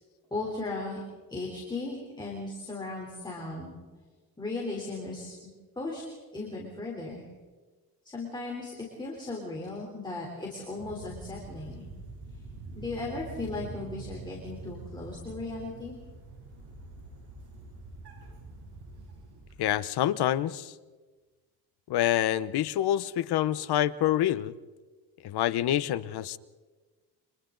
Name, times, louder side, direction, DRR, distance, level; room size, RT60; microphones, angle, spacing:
voice 1, 0.3-1.0 1.3-3.7 4.4-6.0 6.3-7.2 8.1-11.8 12.8-16.0, left 3 dB, 10° left, -2 dB, 3.6 m, -37 dB
sound 1, 10.8-19.7, right 3 dB, 90° right, 7.5 m, -45 dB
voice 2, 19.6-20.7 21.9-24.5 25.2-26.4, left 12 dB, 80° left, 15 dB, 0.9 m, -27 dB
29.5 x 25.0 x 3.9 m, 1.3 s
wide cardioid pair, 170°, 38 cm